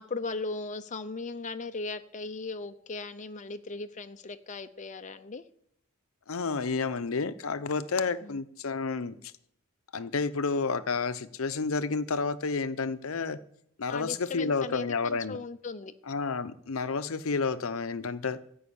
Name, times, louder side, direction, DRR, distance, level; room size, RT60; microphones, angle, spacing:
voice 1, 0.0-5.4 8.2-8.4 13.9-15.9, left 3 dB, 35° left, 0.6 m, -38 dB
voice 2, 6.3-9.2 9.9-13.4 13.8-15.4 16.1-18.4, left 4 dB, 75° left, 0.7 m, -30 dB
14.0 x 5.5 x 8.6 m
head